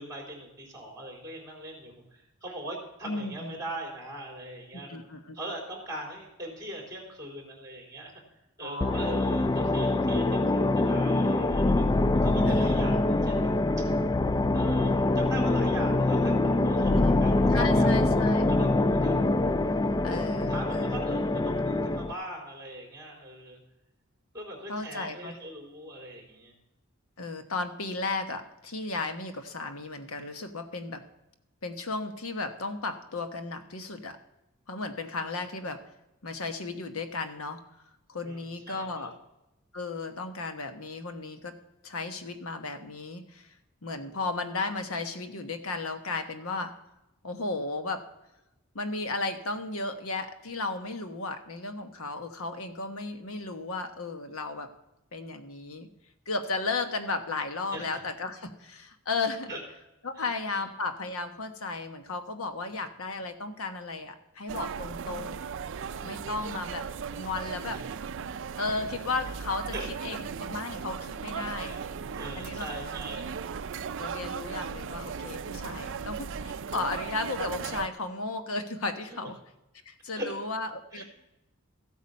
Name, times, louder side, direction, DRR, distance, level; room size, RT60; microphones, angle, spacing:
voice 1, 0.0-5.0 5.3-8.1 8.6-11.8 12.2-13.5 14.5-16.3 16.6-18.0 18.5-19.1 20.5-23.6 24.3-26.5 38.2-39.1 57.7-57.9 59.5-59.6 60.2-60.3 67.7-67.8 69.7-69.9 71.6-71.9 72.1-73.3 79.1-79.2 80.1-80.3 80.9-81.0, right 1 dB, 15° right, 0 dB, 3.8 m, -40 dB
voice 2, 3.0-3.6 4.7-5.4 8.6-9.0 12.5-12.9 16.7-17.2 17.5-18.6 20.0-21.0 24.7-25.3 27.2-31.0 31.6-34.2 34.7-35.8 36.2-37.6 38.1-39.1 39.7-41.6 41.8-43.5 43.8-46.7 47.2-48.0 48.7-54.7 55.1-55.9 56.3-59.5 60.0-65.4 66.0-66.9 67.2-67.8 68.6-69.7 70.0-71.8 72.4-72.7 74.0-79.4 79.9-81.0, left 3 dB, 75° left, 7 dB, 1.1 m, -34 dB
sound 1, 8.8-22.1, left 2 dB, 20° left, 0.3 m, -24 dB
sound 2, 64.5-77.9, right 6 dB, 60° right, 0.4 m, -37 dB
14.5 x 8.4 x 5.4 m, 0.93 s
head